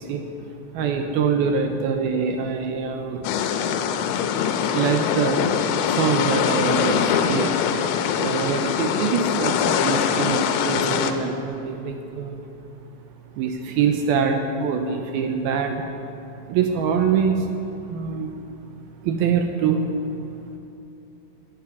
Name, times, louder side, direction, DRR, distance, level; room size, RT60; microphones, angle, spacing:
voice 1, 0.7-3.2 4.7-5.4 6.0-7.0 7.3-7.5 8.2-12.4 13.4-15.8 16.5-17.4 17.9-18.3 19.0-19.8, right 6 dB, 80° right, 4 dB, 2.2 m, -24 dB
sound 1, 3.2-11.1, left 8 dB, 85° left, 3.1 m, -23 dB
11.0 x 10.5 x 9.7 m, 2.8 s
omnidirectional pair, 5.4 m